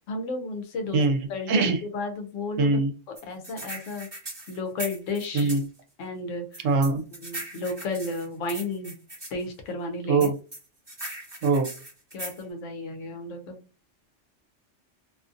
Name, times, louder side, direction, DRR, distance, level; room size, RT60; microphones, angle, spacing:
voice 1, 0.0-1.0 1.3-2.7 3.2-4.1 4.5-5.5 6.0-6.7 7.2-9.0 9.3-10.3 12.1-13.6, left 2 dB, 85° left, 5 dB, 1.0 m, -33 dB
voice 2, 0.9-1.8 2.6-2.9 5.3-5.6 6.6-7.0 10.1-10.3 11.4-11.7, right 3 dB, 90° right, 6 dB, 1.0 m, -22 dB
sound 1, 3.2-5.7 6.5-9.3 10.2-12.4, right 1 dB, 25° right, 0.8 m, -39 dB
2.6 x 2.5 x 2.5 m, 0.35 s
omnidirectional pair, 1.3 m